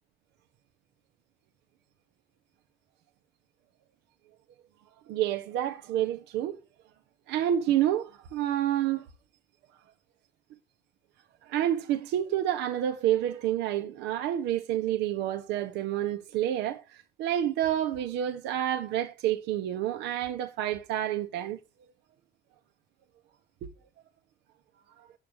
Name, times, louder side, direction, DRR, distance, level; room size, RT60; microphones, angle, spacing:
voice 1, 5.1-6.6 7.3-9.1 11.4-21.6 23.6-23.7, right 11 dB, 90° right, 1.0 m, -29 dB
10.0 x 7.3 x 6.3 m
cardioid pair, 110°, 17 cm